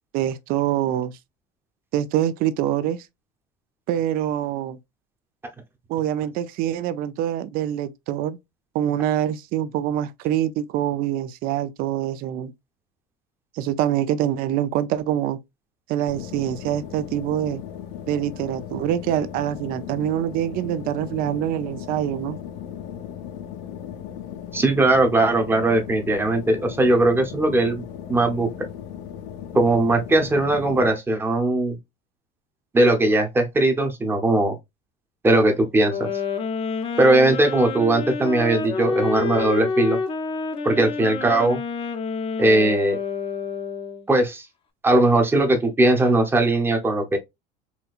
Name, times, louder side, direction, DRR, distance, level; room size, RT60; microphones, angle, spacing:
voice 1, 0.1-1.1 1.9-3.1 3.9-4.8 5.9-8.4 8.7-12.5 13.6-15.4 15.9-17.6 18.1-22.4, right 11 dB, 50° right, 0.4 m, -25 dB
sound 1, 16.1-30.9, left 9 dB, 75° left, 0.8 m, -37 dB
voice 2, 24.5-27.8 28.1-28.5 29.5-31.8 32.7-34.6 35.2-36.1 37.0-40.0 40.6-41.6 42.4-43.0 44.1-44.5 44.8-47.2, right 2 dB, 10° right, 0.8 m, -19 dB
sound 2, 35.9-44.1, left 5 dB, 30° left, 0.6 m, -28 dB
4.2 x 2.7 x 2.3 m
cardioid pair, 145°, 19 cm